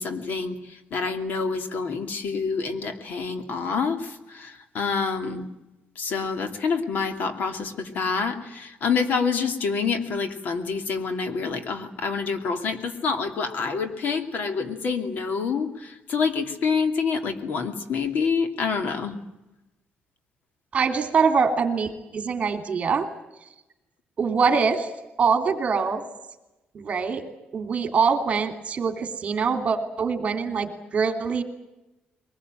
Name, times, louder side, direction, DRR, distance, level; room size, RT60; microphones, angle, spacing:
voice 1, 0.0-5.5 6.0-19.2, left 5 dB, 60° left, 7 dB, 2.7 m, -27 dB
voice 2, 20.7-23.1 24.2-24.9 25.2-26.0 26.7-27.2 27.5-31.4, right 5 dB, 40° right, 7 dB, 3.1 m, -24 dB
23.0 x 20.5 x 9.2 m, 0.97 s
cardioid pair, 150°, 3 cm